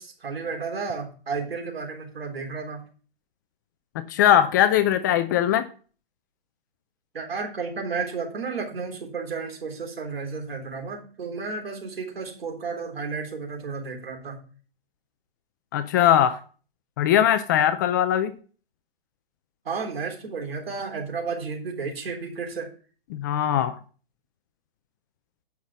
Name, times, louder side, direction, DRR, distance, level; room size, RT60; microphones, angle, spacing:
voice 1, 0.0-2.8 7.1-14.4 19.7-22.7, right 4 dB, 75° right, 3.7 m, -32 dB
voice 2, 4.0-5.6 15.7-16.4 17.0-18.4 23.1-23.8, left 10 dB, 20° left, 0.4 m, -20 dB
10.0 x 5.8 x 6.1 m
hypercardioid pair, 140°, 30 cm